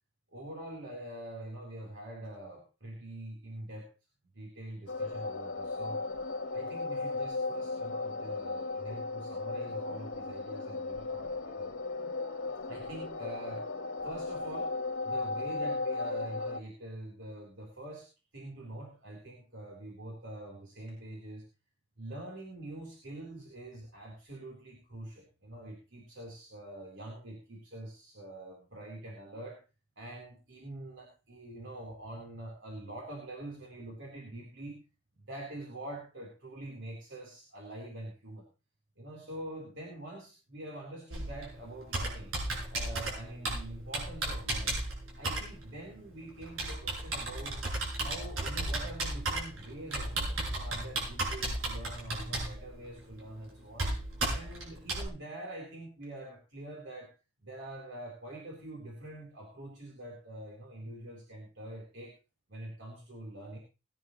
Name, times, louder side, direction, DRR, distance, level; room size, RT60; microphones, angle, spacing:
voice 1, 0.3-3.9 4.3-6.0 6.5-11.7 12.7-13.7 14.0-14.8 15.0-18.1 18.3-21.4 22.0-29.6 30.0-34.8 35.1-38.5 39.0-42.3 42.7-44.8 45.2-47.6 47.9-53.9 54.3-57.1 57.4-62.1 62.5-63.6, right 1 dB, 65° right, -2 dB, 4.1 m, -45 dB
sound 1, 4.9-16.6, left 3 dB, 85° left, 1.4 m, -36 dB
Computer keyboard, 41.1-55.1, right 2 dB, 85° right, 7.1 m, -35 dB
20.5 x 10.0 x 3.2 m, 0.31 s
head